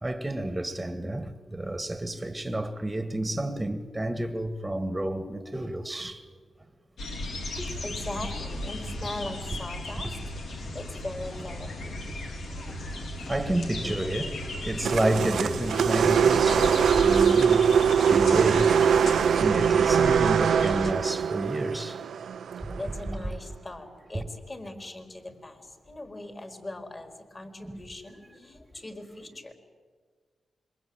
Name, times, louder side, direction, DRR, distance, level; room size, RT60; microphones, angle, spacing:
voice 1, 0.0-6.2 7.6-7.8 9.9-10.1 10.6-10.7 11.4-11.5 12.9-18.7 19.4-22.0 22.6-22.8 24.1-24.3 27.6-27.8 28.3-28.4, right 1 dB, 15° right, 1.7 m, -31 dB
sound 1, 7.0-20.9, left 1 dB, 80° left, 4.5 m, -35 dB
voice 2, 7.8-10.2 10.5-11.9 22.8-29.5, left 2 dB, 30° left, 4.5 m, -40 dB
sound 2, 14.8-23.1, right 7 dB, 80° right, 0.7 m, -22 dB
27.0 x 23.5 x 9.0 m
cardioid pair, 70°, 0 cm